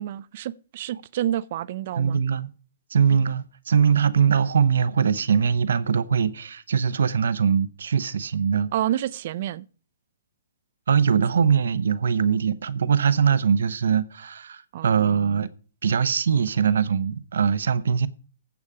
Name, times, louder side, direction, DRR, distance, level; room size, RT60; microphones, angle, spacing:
voice 1, 0.0-2.2 8.7-9.7 14.7-15.4, right 12 dB, 50° right, 0.5 m, -29 dB
voice 2, 2.0-2.5 2.9-8.7 10.9-15.5 15.8-18.1, right 7 dB, 75° right, 0.9 m, -22 dB
15.0 x 7.1 x 4.9 m
hypercardioid pair, 140°, 0 cm